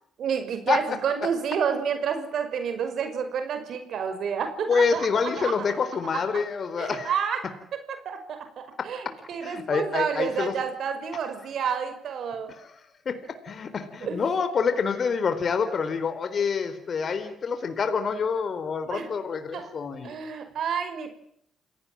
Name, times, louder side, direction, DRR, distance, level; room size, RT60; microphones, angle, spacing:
voice 1, 0.2-5.5 6.8-7.4 8.0-12.5 14.0-14.2 18.9-19.1 19.5-19.7 20.0-21.1, right 7 dB, 65° right, 7 dB, 5.8 m, -29 dB
voice 2, 4.7-7.1 8.8-9.1 9.4-10.5 12.6-12.7 13.1-20.2, left 5 dB, 50° left, 9 dB, 4.2 m, -27 dB
29.0 x 18.0 x 7.6 m, 0.70 s
cardioid pair, 90°, 0 cm